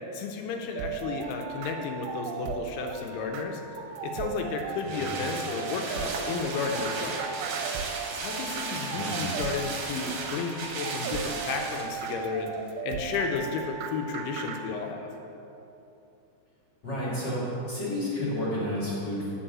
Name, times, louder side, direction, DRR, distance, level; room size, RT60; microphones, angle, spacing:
voice 1, 0.1-7.2 8.2-12.5 12.8-15.0, left 5 dB, 80° left, 2 dB, 2.6 m, -33 dB
sound 1, 0.8-14.6, right 7 dB, 85° right, 2.8 m, -37 dB
sound 2, 4.1-12.2 12.5-12.6, right 4 dB, 65° right, 2.3 m, -35 dB
voice 2, 8.9-9.2 16.8-17.4 17.7-19.3, left 1 dB, 40° left, -7 dB, 1.6 m, -31 dB
10.0 x 4.7 x 7.4 m, 2.9 s
omnidirectional pair, 5.0 m